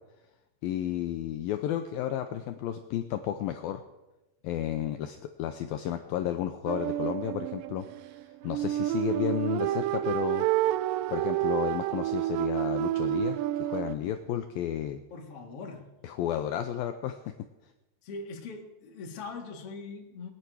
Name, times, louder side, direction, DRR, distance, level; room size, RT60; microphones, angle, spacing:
voice 1, 0.6-3.8 4.4-7.9 8.4-10.5 11.1-15.0 16.0-17.3, left 11 dB, 85° left, 7 dB, 2.1 m, -32 dB
sound 1, 6.7-14.0, right 15 dB, 85° right, 2.8 m, -29 dB
voice 2, 15.1-16.0 18.0-20.3, left 4 dB, 45° left, 1 dB, 2.1 m, -41 dB
20.0 x 9.9 x 6.2 m, 1.0 s
omnidirectional pair, 5.1 m